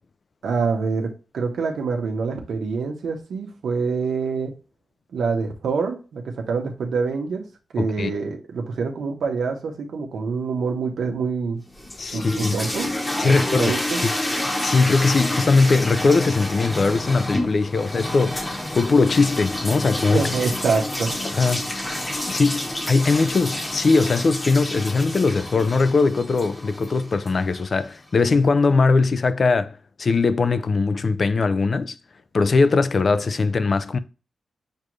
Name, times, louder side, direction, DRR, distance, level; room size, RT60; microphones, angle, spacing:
voice 1, 0.4-4.5 5.1-7.4 7.7-11.6 12.1-12.9 13.2-14.0 20.1-21.1, right 5 dB, 90° right, 1.1 m, -26 dB
voice 2, 7.8-8.1 12.0-12.6 13.2-13.8 14.6-20.3 21.3-21.7 22.3-32.0 32.3-34.0, left 4 dB, 45° left, 0.4 m, -20 dB
sound 1, 11.7-27.7, left 1 dB, 15° left, 0.9 m, -29 dB
6.6 x 2.5 x 3.1 m
wide cardioid pair, 135°, 0 cm